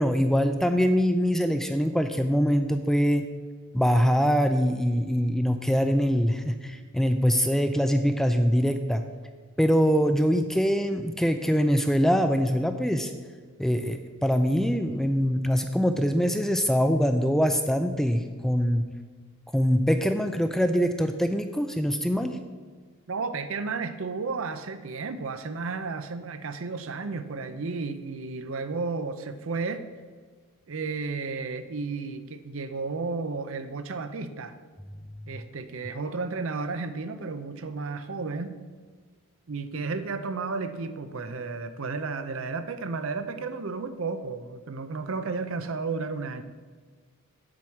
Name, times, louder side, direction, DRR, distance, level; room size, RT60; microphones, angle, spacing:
voice 1, 0.0-3.2 3.7-9.0 9.6-13.1 13.6-18.8 19.5-22.4, equal, ahead, 7 dB, 0.4 m, -23 dB
voice 2, 23.1-29.9 30.7-34.6 35.3-38.5 39.5-46.4, right 4 dB, 60° right, 10 dB, 0.6 m, -33 dB
7.6 x 4.7 x 7.1 m, 1.5 s
head